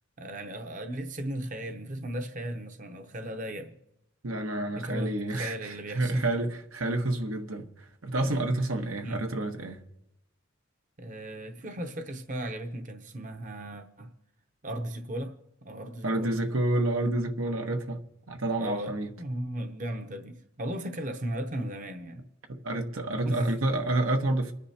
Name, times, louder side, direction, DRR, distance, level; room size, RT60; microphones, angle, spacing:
voice 1, 0.2-3.8 4.8-6.3 8.2-8.5 9.0-9.2 11.0-14.1 14.6-15.4 15.6-16.4 18.6-22.2 23.3-23.5, right 1 dB, 40° right, 0.8 m, -36 dB
voice 2, 4.2-9.8 16.0-18.0 18.3-19.1 22.6-24.5, right 2 dB, 90° right, 1.2 m, -29 dB
28.5 x 10.0 x 2.9 m
head